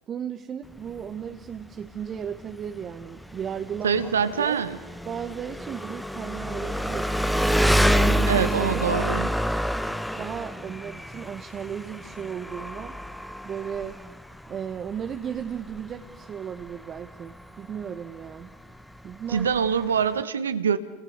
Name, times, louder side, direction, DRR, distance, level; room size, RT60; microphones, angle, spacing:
voice 1, 0.1-4.0 4.4-4.6 5.0-7.6 8.0-8.9 10.1-13.0 13.4-14.0 14.5-18.5 19.0-19.5, right 8 dB, 35° right, 6 dB, 1.3 m, -35 dB
Engine, 0.6-20.2, equal, ahead, 1.1 m, -29 dB
voice 2, 3.8-4.8 8.3-9.3 19.3-20.8, right 7 dB, 80° right, 12 dB, 1.4 m, -24 dB
30.0 x 27.0 x 6.6 m, 1.3 s
hypercardioid pair, 85°, 0 cm